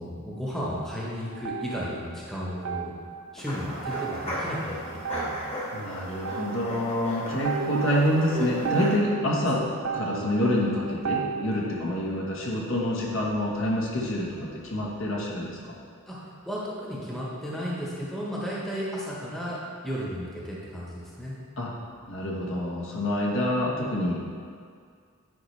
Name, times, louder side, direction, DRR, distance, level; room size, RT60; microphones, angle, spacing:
voice 1, 0.0-2.9 3.3-5.4 16.1-21.3, equal, ahead, -6 dB, 1.0 m, -34 dB
sound 1, 0.5-2.3 2.6-11.7, right 5 dB, 55° right, 0.4 m, -35 dB
sound 2, 3.4-9.0, equal, 30° left, 1.3 m, -36 dB
voice 2, 5.7-9.6 9.9-15.7 21.6-21.7 22.1-24.2, left 1 dB, 65° left, -4 dB, 1.2 m, -27 dB
9.4 x 5.3 x 3.3 m, 2.2 s
head